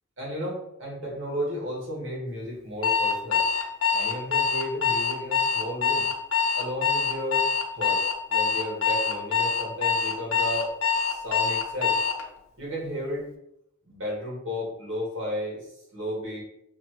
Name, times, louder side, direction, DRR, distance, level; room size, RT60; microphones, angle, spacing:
voice 1, 0.2-3.5 3.9-6.1 6.6-7.5 7.7-10.7 11.1-12.0 12.6-13.3 13.8-16.4, equal, 60° right, -4 dB, 1.6 m, -33 dB
Alarm, 2.8-12.2, left 5 dB, 75° left, 0.7 m, -24 dB
5.7 x 2.2 x 3.0 m, 0.78 s
head